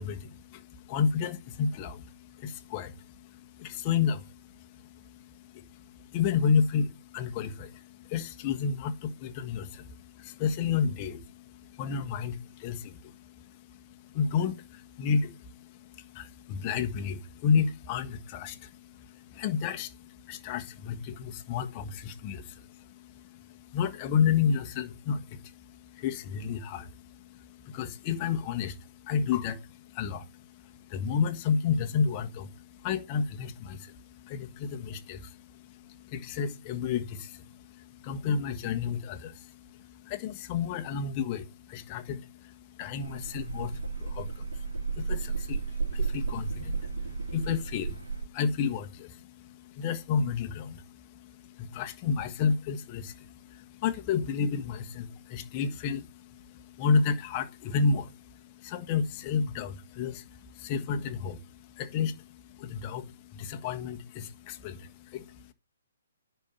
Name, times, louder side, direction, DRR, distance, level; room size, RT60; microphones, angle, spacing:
voice 1, 0.0-65.5, left 6 dB, 30° left, 1.6 m, -32 dB
sound 1, 43.0-48.2, right 4 dB, 80° right, 2.1 m, -33 dB
10.5 x 4.6 x 7.0 m
figure-of-eight pair, 135°, 0 cm